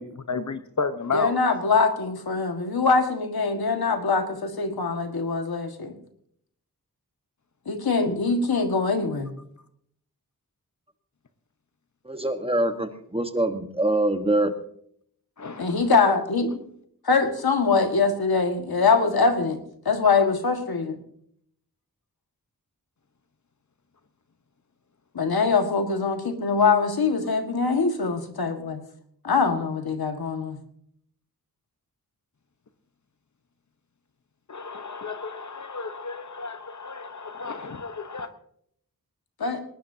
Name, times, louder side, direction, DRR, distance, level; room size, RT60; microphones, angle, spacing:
voice 1, 0.0-1.3 15.4-15.9 34.5-38.3, left 4 dB, 50° left, 10 dB, 1.0 m, -32 dB
voice 2, 1.1-5.9 7.7-9.3 15.6-16.5 17.1-19.6 19.9-21.0 25.2-28.8 29.2-30.6 39.4-39.6, left 4 dB, 85° left, 6 dB, 1.8 m, -23 dB
voice 3, 12.0-14.5, right 1 dB, 15° right, 7 dB, 1.3 m, -24 dB
19.5 x 19.0 x 2.8 m, 0.67 s
wide cardioid pair, 90°, 36 cm